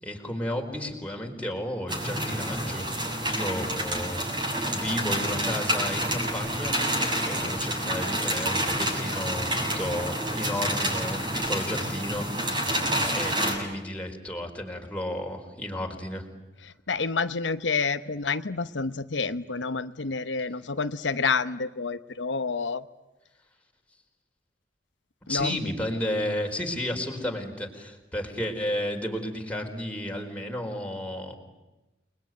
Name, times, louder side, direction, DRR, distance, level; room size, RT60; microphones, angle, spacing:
voice 1, 0.0-2.9 3.2-4.2 4.7-6.8 7.2-12.7 13.1-16.2 25.3-31.4, left 1 dB, 10° left, 1 dB, 4.5 m, -32 dB
sound 1, 1.9-13.6, right 1 dB, 25° right, 7.2 m, -28 dB
voice 2, 16.6-22.8 25.3-25.6, left 4 dB, 85° left, 10 dB, 1.0 m, -29 dB
29.5 x 21.5 x 9.3 m, 1.0 s
head